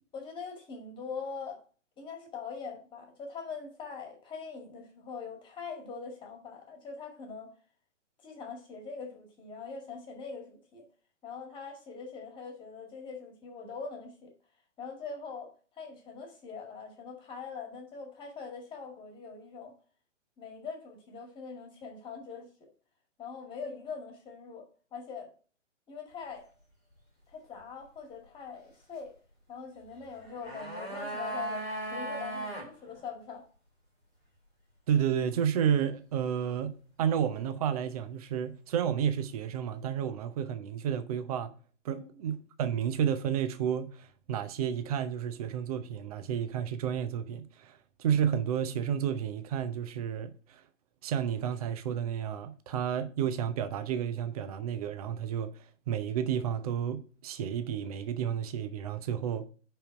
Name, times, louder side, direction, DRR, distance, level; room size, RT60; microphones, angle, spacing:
voice 1, 0.1-1.6 2.0-7.5 8.2-10.8 11.2-14.3 14.8-19.7 20.4-22.5 23.2-25.3 25.9-26.5 27.3-29.1 29.5-31.6 31.9-33.4 41.9-42.2, left 5 dB, 15° left, 1.9 m, -42 dB
sound 1, 30.1-32.7 33.0-33.1, right 1 dB, 5° right, 0.3 m, -37 dB
voice 2, 34.9-36.7 37.0-41.5 41.8-50.6 51.0-55.5 55.9-59.4, right 8 dB, 30° right, 0.7 m, -31 dB
5.6 x 5.4 x 5.8 m
figure-of-eight pair, 130°, 37 cm